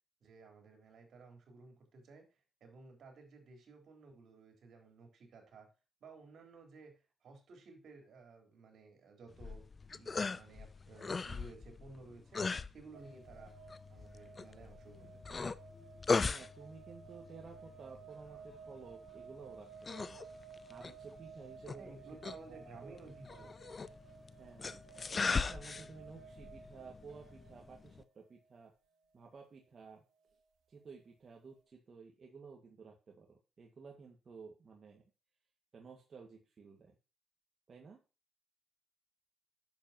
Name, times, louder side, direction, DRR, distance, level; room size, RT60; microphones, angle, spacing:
voice 1, 0.2-5.7 6.0-9.6 9.9-13.5 13.9-15.5 21.8-23.5, right 3 dB, 65° right, 3 dB, 4.2 m, -56 dB
sound 1, 9.3-28.0, left 4 dB, 30° left, 0.5 m, -40 dB
sound 2, 12.9-28.0 28.3-28.5, right 5 dB, 90° right, 1.5 m, -55 dB
voice 2, 16.3-20.2 20.7-22.0 22.2-23.0 23.3-23.5 24.4-24.9 25.1-28.7 29.1-30.0 30.7-35.1 35.7-37.0 37.7-38.0, right 5 dB, 45° right, 0 dB, 1.9 m, -54 dB
10.5 x 7.6 x 3.0 m, 0.31 s
cardioid pair, 110°, 0 cm